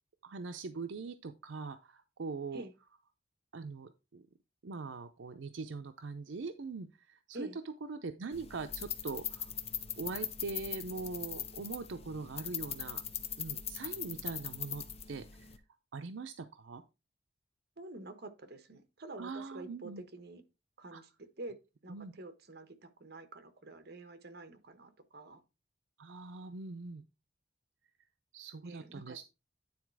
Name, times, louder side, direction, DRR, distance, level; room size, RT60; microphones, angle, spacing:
voice 1, 0.2-2.6 3.5-4.3 4.6-7.6 7.9-9.5 10.0-13.0 13.4-15.5 15.9-16.8 19.2-20.0 20.9-21.0 21.9-22.1 26.0-27.0 28.3-29.3, right 4 dB, 80° right, 0.6 m, -42 dB
sound 1, 8.3-15.6, left 8 dB, 35° left, 0.8 m, -41 dB
voice 2, 17.8-20.4 20.8-21.1 21.4-21.6 21.8-25.4 28.6-29.2, right 2 dB, 60° right, 1.2 m, -48 dB
9.5 x 4.1 x 4.6 m
head